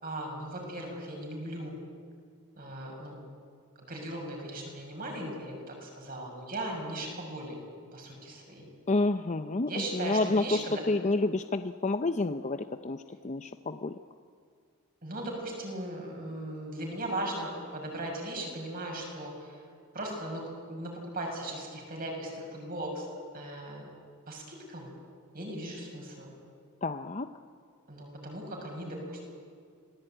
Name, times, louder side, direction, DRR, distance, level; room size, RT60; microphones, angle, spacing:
voice 1, 0.0-1.8 2.6-3.2 3.8-7.6 7.9-8.7 9.7-10.8 15.0-19.6 19.9-23.1 23.3-23.8 24.3-24.9 25.3-26.3 27.9-29.2, right 1 dB, 40° right, 0 dB, 6.3 m, -38 dB
voice 2, 8.9-14.0 26.8-27.3, left 2 dB, 30° left, 9 dB, 0.6 m, -29 dB
26.5 x 19.0 x 9.0 m, 2.1 s
head